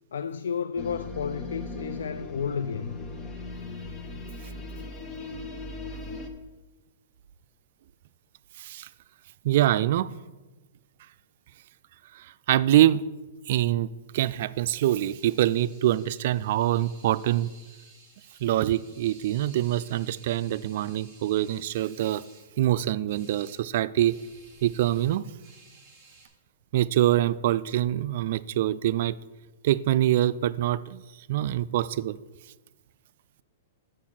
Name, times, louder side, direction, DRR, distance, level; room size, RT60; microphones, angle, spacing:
voice 1, 0.1-3.0, left 6 dB, 90° left, 0.3 m, -32 dB
sound 1, 0.8-6.3, left 3 dB, 20° left, 0.9 m, -38 dB
voice 2, 8.6-8.9 9.4-10.1 12.1-13.0 13.5-13.9 14.1-17.5 18.4-22.2 22.6-24.2 24.6-25.3 26.7-29.1 29.6-31.0 31.3-32.2, right 13 dB, 55° right, 0.3 m, -24 dB
sound 2, 14.7-22.5 23.1-23.6 24.0-26.3, right 3 dB, 10° right, 3.1 m, -55 dB
7.1 x 6.3 x 5.8 m
hypercardioid pair, 150°, 0 cm